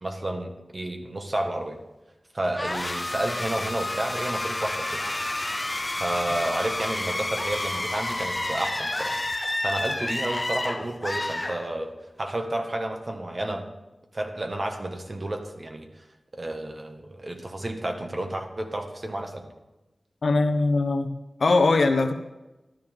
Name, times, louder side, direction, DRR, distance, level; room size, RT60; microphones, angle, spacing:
voice 1, 0.0-1.8 2.3-5.0 6.0-9.2 9.6-13.7 14.1-16.0 16.3-19.5, right 1 dB, 45° right, 3 dB, 1.7 m, -31 dB
sound 1, 2.5-12.1, left 1 dB, 30° left, 0.5 m, -30 dB
voice 2, 20.2-21.1 21.4-22.1, left 3 dB, 85° left, 6 dB, 1.0 m, -21 dB
12.5 x 12.5 x 3.7 m, 1.0 s
wide cardioid pair, 60°, 0 cm